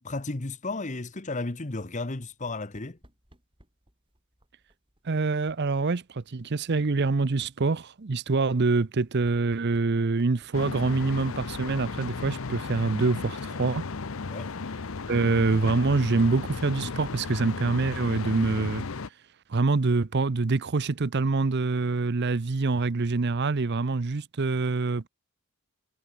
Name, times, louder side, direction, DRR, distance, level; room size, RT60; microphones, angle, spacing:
voice 1, 0.0-3.0 14.3-14.5, left 2 dB, 35° left, 1.1 m, -33 dB
sound 1, 2.1-18.3, right 1 dB, 25° right, 6.4 m, -64 dB
voice 2, 5.0-13.9 15.1-18.8 19.5-25.1, right 3 dB, 50° right, 0.6 m, -25 dB
sound 2, 10.5-19.1, left 4 dB, 65° left, 0.8 m, -35 dB
head